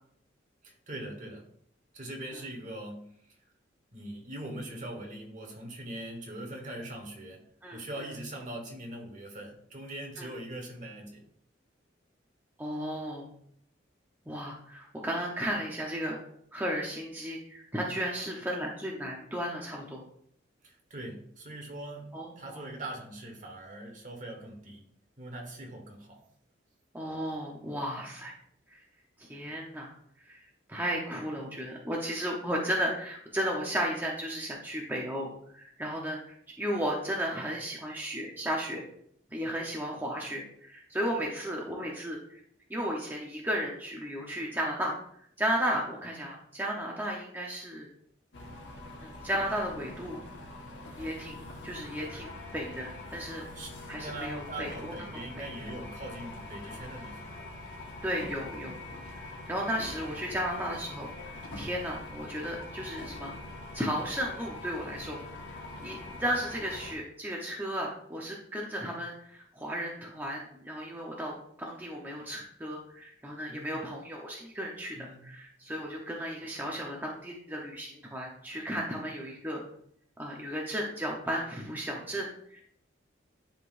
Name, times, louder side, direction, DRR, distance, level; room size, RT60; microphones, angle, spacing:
voice 1, 0.6-1.5 1.9-3.4 3.9-7.4 7.7-11.2 20.6-24.9 25.2-26.2 53.5-57.3 73.5-73.8 74.9-75.3, right 1 dB, 40° right, 2 dB, 1.4 m, -42 dB
voice 2, 12.6-13.3 14.3-16.2 16.5-20.0 22.1-22.6 26.9-28.3 28.7-28.8 29.2-29.9 30.2-30.4 30.7-38.9 39.3-42.4 42.7-45.0 45.4-47.9 49.0-50.2 51.0-53.4 53.9-54.9 55.4-55.5 58.0-58.8 59.1-63.3 63.7-65.2 65.5-79.6 80.2-82.6, equal, 10° right, -2 dB, 0.8 m, -34 dB
sound 1, 48.3-66.9, left 2 dB, 70° left, 1.4 m, -44 dB
11.0 x 3.8 x 2.5 m, 0.68 s
head